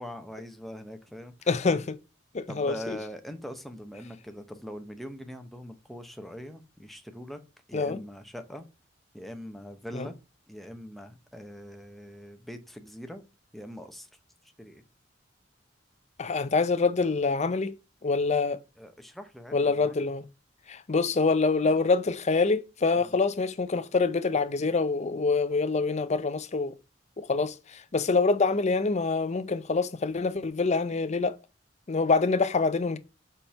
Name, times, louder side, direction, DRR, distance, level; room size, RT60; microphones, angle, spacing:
voice 1, 0.0-1.5 2.5-7.4 7.7-8.7 9.1-10.2 10.5-13.2 13.5-14.1 14.6-14.8 18.8-20.2 23.0-23.1, equal, ahead, 0.8 m, -42 dB
voice 2, 1.5-2.0 2.3-3.0 7.7-8.0 9.9-10.1 16.2-17.7 18.0-18.6 19.5-20.2 20.7-26.7 27.2-31.4 31.9-33.0, left 4 dB, 35° left, 0.6 m, -26 dB
5.3 x 4.4 x 5.6 m
head